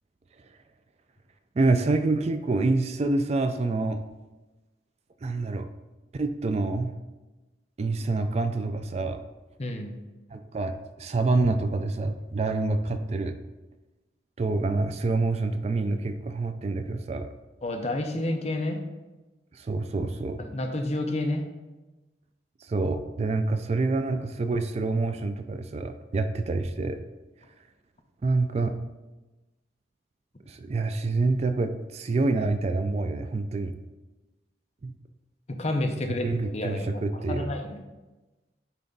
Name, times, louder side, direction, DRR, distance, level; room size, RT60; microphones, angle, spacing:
voice 1, 1.6-4.0 5.2-5.7 6.1-7.0 7.8-9.2 10.3-13.3 14.4-17.3 19.5-20.4 22.7-27.0 28.2-28.8 30.5-33.7 34.8-34.9 36.2-37.5, right 3 dB, 35° right, 8 dB, 0.3 m, -27 dB
voice 2, 9.6-9.9 17.6-18.8 20.4-21.4 35.5-36.2 36.5-37.8, left 1 dB, 35° left, 4 dB, 0.7 m, -30 dB
8.9 x 3.4 x 4.0 m, 1.1 s
head